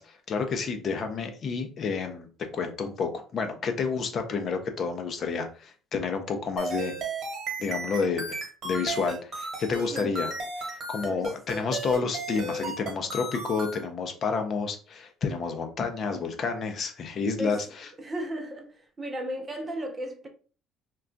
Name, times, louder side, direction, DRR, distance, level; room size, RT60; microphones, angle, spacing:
voice 1, 0.0-2.3 2.5-6.9 7.6-10.3 10.9-17.7, left 5 dB, 40° left, 0.5 m, -30 dB
sound 1, 6.6-13.8, right 2 dB, 45° right, 1.1 m, -34 dB
voice 2, 18.0-20.3, right 1 dB, 20° right, 0.5 m, -35 dB
2.4 x 2.2 x 3.8 m
cardioid pair, 135°, 0 cm